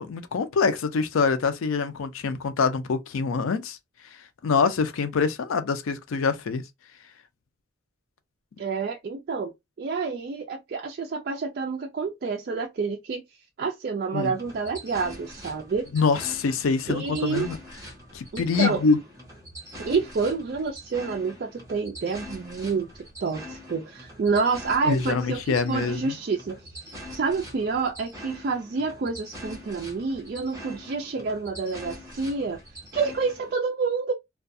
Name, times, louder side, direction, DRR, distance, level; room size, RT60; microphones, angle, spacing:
voice 1, 0.0-3.8 4.4-6.6 14.1-14.3 15.9-17.6 18.1-19.0 24.9-26.2, left 5 dB, 85° left, 0.4 m, -25 dB
voice 2, 8.6-13.2 13.6-15.9 16.9-17.5 18.3-18.8 19.8-22.9 23.2-26.6 27.1-32.6 32.9-34.1, right 4 dB, 45° right, 0.3 m, -28 dB
sound 1, 14.4-33.5, equal, 15° right, 0.9 m, -43 dB
2.4 x 2.2 x 2.6 m
head